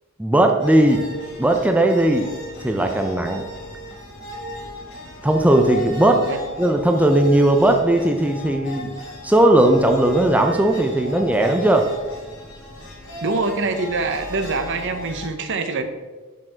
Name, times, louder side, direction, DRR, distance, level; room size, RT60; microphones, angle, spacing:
voice 1, 0.2-1.1 1.4-2.3 2.6-3.5 5.2-6.3 6.6-8.9 9.2-11.9, right 1 dB, 5° right, 4 dB, 0.4 m, -17 dB
sound 1, 0.6-15.3, left 1 dB, 55° left, 2.3 m, -36 dB
voice 2, 13.2-15.8, right 3 dB, 60° right, 8 dB, 0.8 m, -24 dB
6.8 x 6.2 x 4.4 m, 1.3 s
head